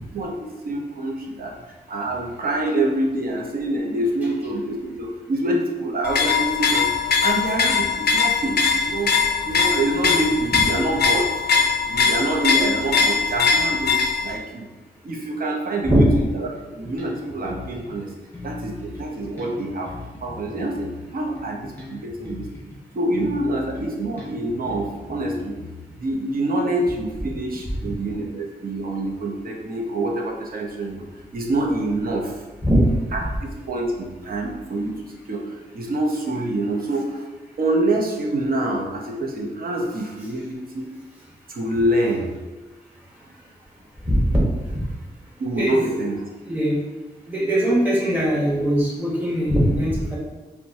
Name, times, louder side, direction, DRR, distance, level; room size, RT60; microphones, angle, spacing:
voice 1, 0.1-1.5 1.9-6.9 7.2-9.1 9.5-11.2 11.9-14.7 15.0-16.1 16.3-18.1 18.4-19.9 20.2-22.4 22.9-25.5 26.0-31.1 31.3-32.4 33.1-33.2 33.7-37.3 37.6-40.9 41.5-42.3 45.4-46.1, right 1 dB, 60° right, 0 dB, 0.7 m, -26 dB
sound 1, 6.0-14.3, left 5 dB, 70° left, 0.4 m, -21 dB
Bass guitar, 16.5-18.0 18.3-22.8 23.1-26.1, left 3 dB, 10° left, 1.2 m, -40 dB
voice 2, 32.6-32.9 44.1-44.2 44.7-44.8 45.5-45.8 46.4-46.8 47.3-50.1, equal, 10° right, -6 dB, 1.4 m, -20 dB
4.3 x 2.2 x 2.7 m, 1.2 s
cardioid pair, 75°, 17 cm